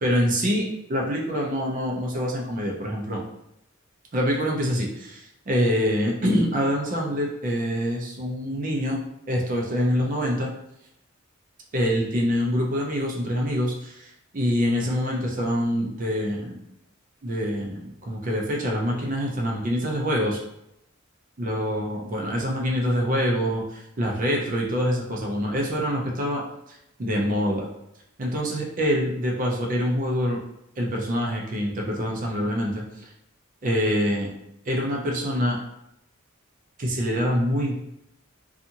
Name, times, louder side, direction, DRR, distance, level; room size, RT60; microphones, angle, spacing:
voice 1, 0.0-3.2 4.1-9.0 9.3-10.5 11.7-16.6 17.2-20.4 21.4-26.4 27.0-27.7 28.2-30.4 30.8-32.8 33.6-34.3 34.7-35.6 36.8-37.8, equal, 40° right, -1 dB, 0.5 m, -25 dB
2.6 x 2.4 x 2.7 m, 0.81 s
head